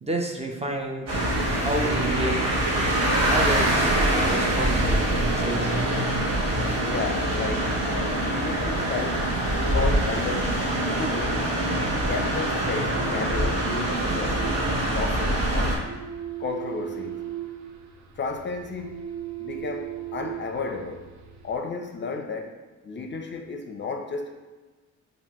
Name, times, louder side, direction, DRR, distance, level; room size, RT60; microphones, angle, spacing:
voice 1, 0.0-1.1 1.5-2.5 3.3-5.9, right 1 dB, 20° right, 2 dB, 0.5 m, -30 dB
sound 1, 1.1-15.8, right 1 dB, 55° right, 1.3 m, -24 dB
voice 2, 6.8-9.3 9.6-10.6 11.0-11.5 12.1-14.5 14.8-15.8 16.4-17.2 18.2-19.0 19.4-21.1 21.4-24.4, left 4 dB, 40° left, 4 dB, 0.5 m, -33 dB
sound 2, 12.3-21.6, right 11 dB, 70° right, 0.6 m, -39 dB
5.4 x 2.6 x 3.0 m, 1.2 s
cardioid pair, 90°, 30 cm